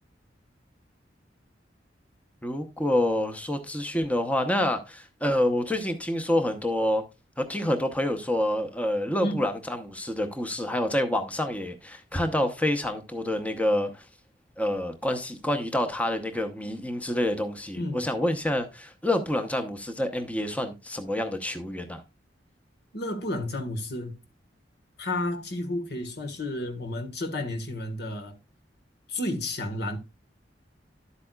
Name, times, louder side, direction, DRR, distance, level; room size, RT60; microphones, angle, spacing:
voice 1, 2.4-7.0 7.4-14.1 14.6-22.0, left 1 dB, 10° left, 0.8 m, -27 dB
voice 2, 17.8-18.1 22.9-24.2 25.0-28.4 29.1-30.0, left 1 dB, 60° left, 1.5 m, -31 dB
11.0 x 8.3 x 2.3 m
head